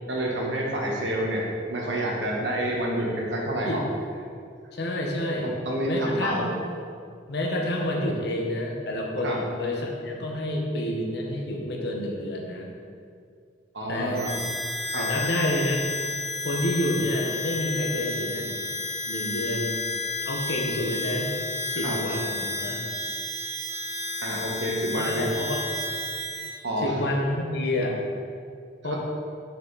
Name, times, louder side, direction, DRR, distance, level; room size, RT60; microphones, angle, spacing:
voice 1, 0.1-3.8 5.4-6.5 9.2-9.4 13.7-14.5 14.9-15.1 21.8-22.0 24.2-25.4 26.6-27.0, right 1 dB, 75° right, -2 dB, 1.4 m, -28 dB
voice 2, 4.7-5.5 5.9-6.5 7.3-12.7 13.9-14.2 15.0-15.8 16.4-18.6 19.1-19.8 20.2-21.3 21.7-22.9 25.0-25.6 26.8-28.0 28.8-29.0, left 1 dB, 65° left, 0 dB, 1.1 m, -28 dB
Harmonica, 14.1-26.6, left 2 dB, 40° right, 1.2 m, -31 dB
6.9 x 6.0 x 4.1 m, 2.3 s
head